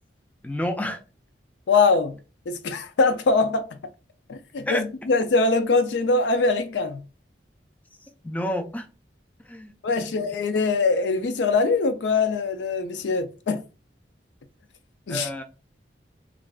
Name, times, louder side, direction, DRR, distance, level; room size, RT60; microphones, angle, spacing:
voice 1, 0.4-1.0 4.7-4.8 8.2-8.9 9.5-10.1 15.1-15.4, left 1 dB, 10° left, 0.4 m, -29 dB
voice 2, 1.7-2.2 2.5-3.7 4.3-7.0 9.8-13.7 15.1-15.4, left 3 dB, 80° left, 0.4 m, -22 dB
3.4 x 2.4 x 2.3 m
head